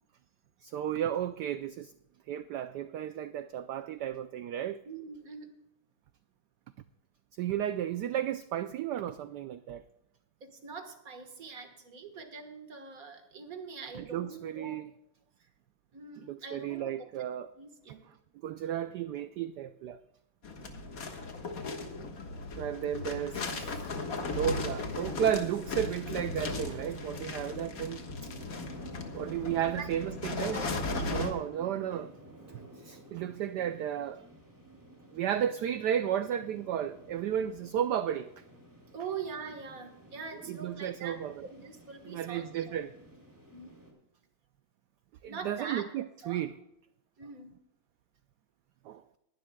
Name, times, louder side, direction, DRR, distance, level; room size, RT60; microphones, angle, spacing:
voice 1, 0.6-1.9 2.3-4.8 7.4-9.9 13.9-14.9 16.2-17.5 18.1-18.2 18.4-20.0 22.6-23.9 24.2-28.3 29.1-30.6 31.1-32.1 32.5-34.2 35.1-38.3 40.4-41.5 42.1-42.9 45.2-46.5 48.8-49.0, right 10 dB, 85° right, 0.9 m, -33 dB
voice 2, 4.9-5.5 10.4-14.8 15.9-17.0 17.6-18.0 24.4-24.6 29.8-29.9 30.5-31.1 38.9-42.8 43.5-43.8 45.3-45.9 46.2-46.5 47.2-47.5, right 5 dB, 45° right, 1.8 m, -43 dB
sound 1, 20.4-31.3, left 3 dB, 45° left, 1.7 m, -37 dB
sound 2, 25.9-43.9, right 1 dB, 10° right, 2.4 m, -53 dB
19.5 x 12.0 x 2.2 m
omnidirectional pair, 2.3 m